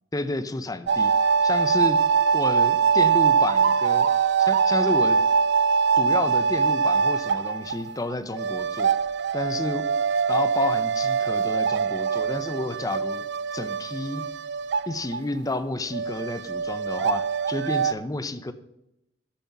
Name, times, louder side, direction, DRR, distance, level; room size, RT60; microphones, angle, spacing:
voice 1, 0.1-1.1 1.4-2.0 2.3-4.1 4.4-5.2 6.0-8.9 9.3-9.9 10.3-14.3 14.9-18.5, left 2 dB, 20° left, 12 dB, 0.6 m, -30 dB
sound 1, 0.9-15.2 15.5-15.6 15.9-17.9, right 6 dB, 60° right, 0.4 m, -23 dB
13.0 x 7.3 x 5.9 m, 0.85 s
head